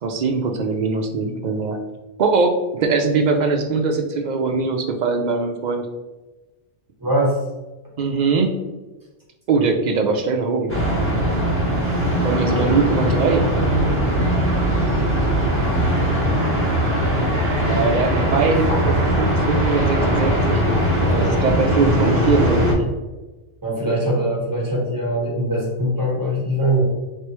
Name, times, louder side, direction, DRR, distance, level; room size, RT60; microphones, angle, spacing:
voice 1, 0.0-1.8 2.2-5.9 8.0-8.5 9.5-10.7 12.2-13.5 17.6-20.6 21.1-22.8, right 4 dB, 60° right, 4 dB, 0.4 m, -21 dB
voice 2, 7.0-7.4 18.8-19.0 23.6-26.8, right 1 dB, 15° right, -4 dB, 1.2 m, -22 dB
sound 1, 10.7-22.7, right 1 dB, 10° left, 1.2 m, -20 dB
4.0 x 3.3 x 3.0 m, 1.1 s
omnidirectional pair, 1.2 m